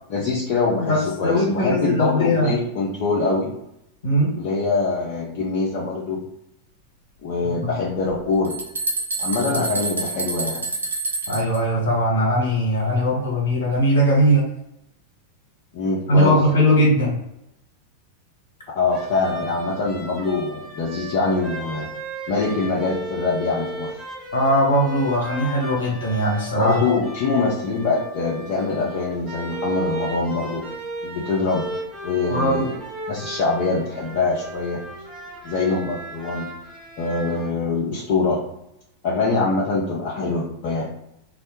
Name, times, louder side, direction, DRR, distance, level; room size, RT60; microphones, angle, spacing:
voice 1, 0.1-3.5 4.3-6.2 7.2-8.6 9.2-10.6 15.7-16.4 18.8-21.9 22.3-23.9 26.6-30.6 31.0-31.7 32.0-32.8 33.1-34.8 35.4-36.5 37.0-38.4 39.0-40.9, left 3 dB, 45° left, -5 dB, 0.5 m, -24 dB
voice 2, 0.8-2.5 4.0-4.3 7.6-7.7 9.5-9.6 11.3-14.4 16.1-17.1 24.3-27.0 32.3-32.7, equal, 65° left, -3 dB, 1.0 m, -20 dB
sound 1, 8.1-11.6, right 3 dB, 75° right, 0.4 m, -27 dB
sound 2, 18.9-37.5, right 1 dB, 10° right, 0.8 m, -35 dB
2.2 x 2.0 x 2.9 m, 0.82 s
figure-of-eight pair, 90°, 0 cm